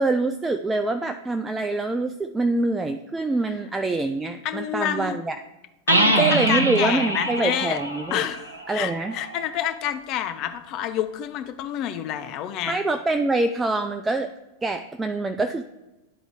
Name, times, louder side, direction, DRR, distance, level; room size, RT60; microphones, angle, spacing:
voice 1, 0.0-5.4 6.2-8.3 8.7-9.2 12.7-14.3 14.6-15.6, right 2 dB, 10° right, 7 dB, 0.3 m, -25 dB
voice 2, 4.4-5.2 5.9-7.8 8.1-12.8, left 10 dB, 40° left, 8 dB, 0.6 m, -28 dB
sound 1, 5.9-9.5, right 2 dB, 80° right, 0.8 m, -24 dB
9.9 x 3.9 x 4.6 m, 1.0 s
figure-of-eight pair, 90°, 0 cm